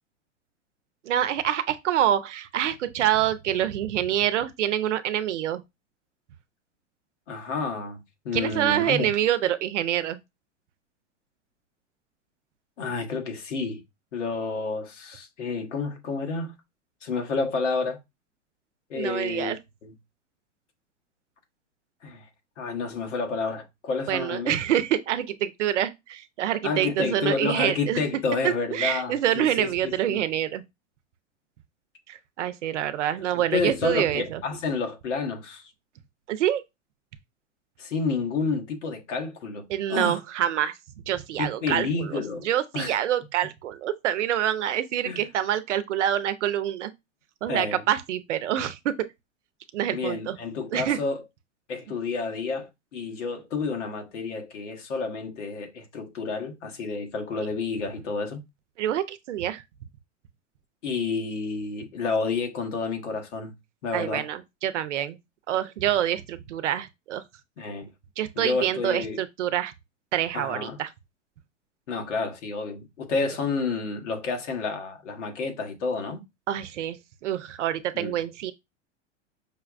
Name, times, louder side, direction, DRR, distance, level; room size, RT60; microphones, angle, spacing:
voice 1, 1.0-5.6 8.3-10.2 18.9-19.6 24.1-28.0 28.4-30.6 32.1-34.4 36.3-36.6 39.7-40.7 41.1-46.9 47.4-49.0 49.7-50.4 50.7-51.0 58.8-59.6 63.9-65.2 65.5-67.2 68.2-69.7 70.1-70.9 76.5-78.5, right 11 dB, 75° right, 0.7 m, -26 dB
voice 2, 7.3-9.1 12.8-13.8 14.1-16.5 17.0-18.0 18.9-19.5 19.8-19.9 22.0-22.3 22.6-24.6 26.6-30.2 33.3-35.7 37.8-40.2 41.4-42.5 42.7-43.0 45.0-45.2 47.5-47.8 49.9-51.2 51.7-58.4 60.8-63.5 63.8-64.2 67.6-67.9 68.4-69.2 70.3-70.8 71.9-76.2 77.9-78.1, left 4 dB, 80° left, 1.3 m, -30 dB
5.6 x 2.1 x 2.5 m
hypercardioid pair, 100°, 36 cm